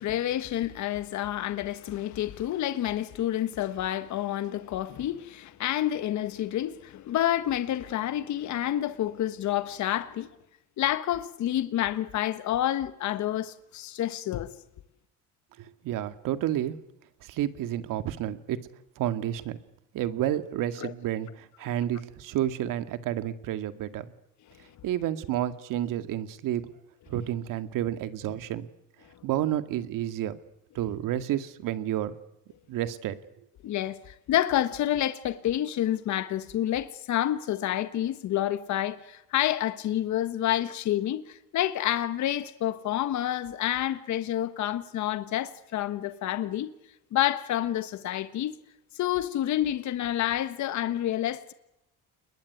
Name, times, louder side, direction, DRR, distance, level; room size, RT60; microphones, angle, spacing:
voice 1, 0.0-10.3 10.8-14.5 20.8-20.9 33.6-46.7 47.1-48.5 48.9-51.5, left 12 dB, 60° left, 1.4 m, -29 dB
voice 2, 15.6-16.8 17.2-18.6 19.0-19.6 19.9-24.1 24.8-26.7 27.1-28.7 29.2-30.4 30.8-32.1 32.7-33.2, right 12 dB, 70° right, 2.0 m, -30 dB
29.5 x 21.0 x 9.6 m
cardioid pair, 120°, 33 cm